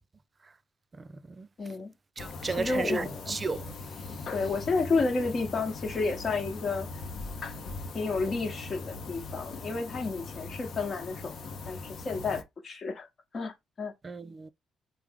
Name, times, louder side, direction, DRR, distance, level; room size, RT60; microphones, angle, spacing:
voice 1, 0.9-1.5 2.2-3.7 14.0-14.5, right 4 dB, 30° right, 0.3 m, -34 dB
voice 2, 1.6-1.9 2.6-3.4 4.3-6.9 7.9-11.4 11.7-13.1 13.3-13.9, left 3 dB, 45° left, 1.0 m, -31 dB
sound 1, 2.2-12.4, left 3 dB, 60° left, 0.6 m, -40 dB
3.3 x 2.0 x 3.4 m
cardioid pair, 90°, 0 cm